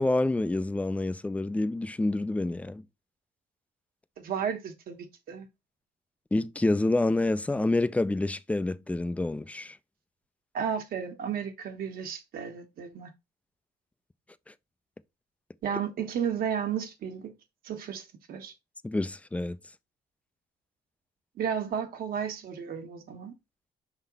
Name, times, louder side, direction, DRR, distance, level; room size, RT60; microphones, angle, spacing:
voice 1, 0.0-2.8 6.3-9.8 18.8-19.6, left 2 dB, 10° left, 0.4 m, -27 dB
voice 2, 4.2-5.5 10.5-13.1 15.6-17.3 17.6-18.5 21.4-23.3, right 8 dB, 60° right, 1.5 m, -33 dB
5.9 x 4.0 x 4.0 m
cardioid pair, 110°, 17 cm